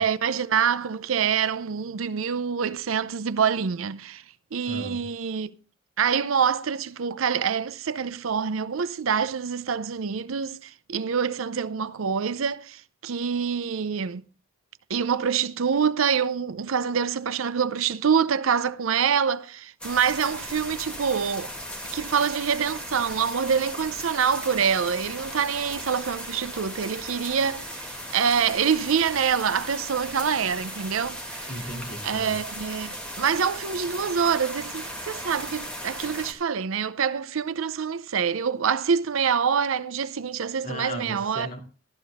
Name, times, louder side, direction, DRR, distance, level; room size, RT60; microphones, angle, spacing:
voice 1, 0.0-4.2 4.5-5.5 6.0-14.2 14.9-21.5 21.9-31.5 32.0-41.5, right 7 dB, 85° right, 0.6 m, -26 dB
voice 2, 4.7-5.0 31.5-32.4 40.6-41.8, equal, 45° left, 2.8 m, -36 dB
sound 1, 19.8-36.3, equal, 5° left, 2.0 m, -37 dB
13.0 x 12.5 x 3.5 m
head